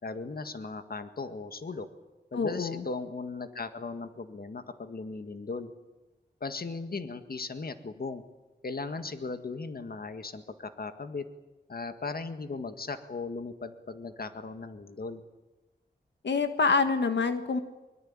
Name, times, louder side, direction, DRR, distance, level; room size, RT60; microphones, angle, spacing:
voice 1, 0.0-1.9 2.3-5.7 6.4-8.2 8.6-11.3 11.7-15.2, left 3 dB, 55° left, 8 dB, 1.9 m, -37 dB
voice 2, 2.3-2.8 16.2-17.6, left 4 dB, 80° left, 7 dB, 1.6 m, -26 dB
23.5 x 23.0 x 8.9 m, 1.1 s
wide cardioid pair, 75°, 18 cm